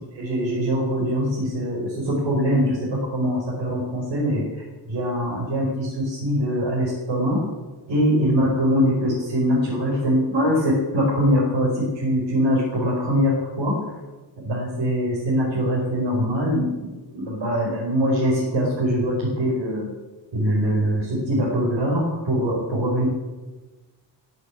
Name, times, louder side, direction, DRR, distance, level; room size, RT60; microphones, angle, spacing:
voice 1, 0.1-4.4 4.9-7.4 7.9-13.8 14.4-16.9 17.1-19.9 20.3-23.1, equal, 85° right, -5 dB, 5.0 m, -22 dB
18.5 x 8.1 x 8.6 m, 1.2 s
wide cardioid pair, 175°, 45 cm